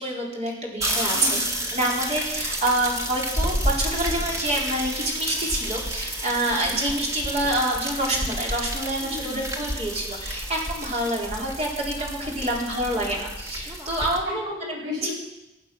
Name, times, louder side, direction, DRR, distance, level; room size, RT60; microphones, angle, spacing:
voice 1, 0.0-1.4 1.7-14.4 15.0-15.1, right 1 dB, 35° right, -3 dB, 4.4 m, -27 dB
sound 1, 0.8-14.2, equal, 15° right, 2.0 m, -30 dB
voice 2, 1.1-1.5 6.5-6.9 9.0-9.4 12.0-12.7 14.2-15.1, left 1 dB, 85° right, -5 dB, 7.8 m, -35 dB
24.5 x 8.9 x 6.2 m, 0.94 s
head